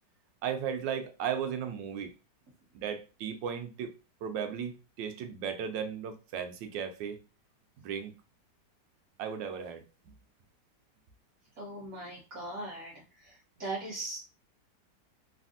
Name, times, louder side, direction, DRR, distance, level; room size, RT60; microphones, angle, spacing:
voice 1, 0.4-2.1 2.7-3.9 4.2-7.2 7.8-8.2 9.2-10.1, right 7 dB, 85° right, 1.3 m, -36 dB
voice 2, 11.6-14.2, right 2 dB, 60° right, 1.1 m, -40 dB
3.3 x 2.4 x 2.5 m
omnidirectional pair, 1.9 m